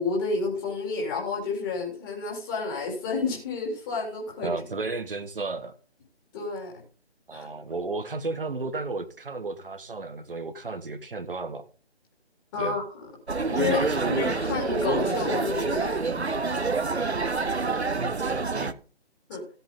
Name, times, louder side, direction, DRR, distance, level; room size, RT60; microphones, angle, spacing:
voice 1, 0.0-4.5 6.3-6.7 7.3-7.5 12.5-13.0 13.5-16.0 19.3-19.4, left 4 dB, 20° left, -1 dB, 3.8 m, -30 dB
voice 2, 4.4-5.8 7.3-11.7 12.6-12.8 13.6-14.2 17.1-17.2 17.6-18.8, right 3 dB, 55° right, 8 dB, 1.4 m, -33 dB
sound 1, 13.3-18.7, right 4 dB, 80° right, 1.0 m, -27 dB
16.0 x 8.1 x 3.8 m, 0.37 s
figure-of-eight pair, 150°, 33 cm